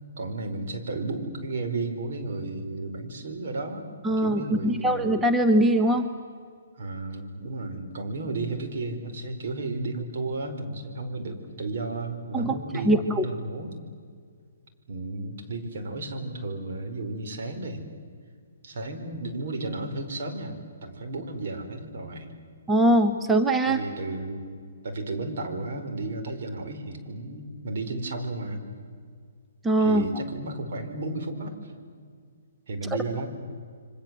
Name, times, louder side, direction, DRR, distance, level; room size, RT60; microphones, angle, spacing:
voice 1, 0.2-5.1 6.8-13.8 14.9-17.9 18.6-22.3 23.6-24.4 24.8-28.6 29.8-31.7 32.7-33.3, right 2 dB, 60° right, 6 dB, 4.8 m, -33 dB
voice 2, 4.0-6.1 12.3-12.6 12.8-13.3 22.7-23.8 29.6-30.0, right 1 dB, 10° right, 6 dB, 1.0 m, -22 dB
28.0 x 24.5 x 7.8 m, 2.1 s
hypercardioid pair, 145°, 0 cm